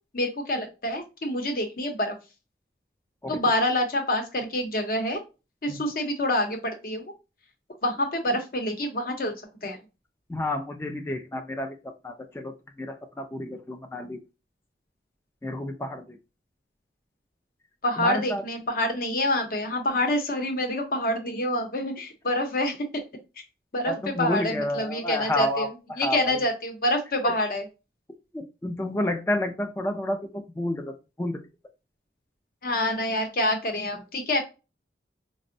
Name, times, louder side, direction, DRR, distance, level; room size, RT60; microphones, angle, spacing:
voice 1, 0.1-2.2 3.3-5.2 5.6-7.0 7.8-9.3 9.6-9.8 17.8-23.0 23.7-25.7 25.9-27.6 32.6-34.4, left 1 dB, 50° left, 4 dB, 0.7 m, -27 dB
voice 2, 10.3-14.2 15.4-16.2 18.0-18.4 23.9-25.7 26.0-26.4 27.2-27.3 28.3-31.4, left 1 dB, 15° left, 5 dB, 0.3 m, -30 dB
4.2 x 2.1 x 2.5 m, 0.29 s
head